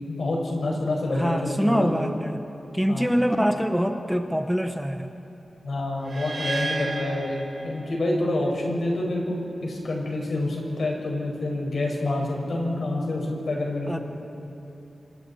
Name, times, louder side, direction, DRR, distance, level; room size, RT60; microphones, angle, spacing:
voice 1, 0.1-1.9 2.9-3.1 5.6-7.4 7.6-14.0, left 2 dB, 65° left, -1 dB, 4.8 m, -27 dB
voice 2, 1.1-2.4 2.7-5.1 13.9-14.0, equal, ahead, 6 dB, 0.7 m, -24 dB
sound 1, 6.0-8.2, right 2 dB, 45° right, 5.6 m, -33 dB
28.5 x 25.5 x 4.2 m, 2.9 s
wide cardioid pair, 140°, 0 cm